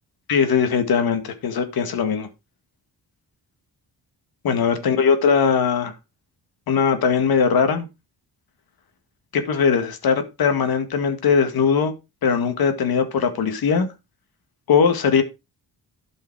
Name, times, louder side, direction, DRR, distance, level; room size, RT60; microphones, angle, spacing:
voice 1, 0.3-2.3 4.4-5.9 6.7-7.9 9.3-11.9 12.2-13.9 14.7-15.2, left 6 dB, 75° left, 8 dB, 2.0 m, -20 dB
12.0 x 5.5 x 4.7 m, 0.26 s
wide cardioid pair, 155°, 37 cm